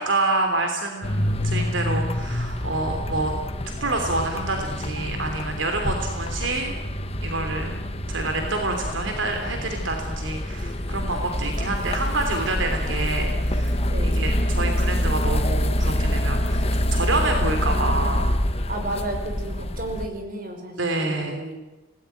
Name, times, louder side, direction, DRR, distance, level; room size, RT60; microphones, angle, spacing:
voice 1, 0.0-3.3 3.8-6.7 7.2-7.7 8.1-16.6 16.9-18.3 20.8-21.4, right 2 dB, 75° right, 4 dB, 3.0 m, -27 dB
sound 1, 1.0-20.1, left 1 dB, 30° left, 1.3 m, -26 dB
voice 2, 13.8-14.2 17.6-18.2 18.7-21.6, right 1 dB, 45° right, 5 dB, 5.7 m, -33 dB
26.5 x 19.0 x 9.2 m, 1.1 s
head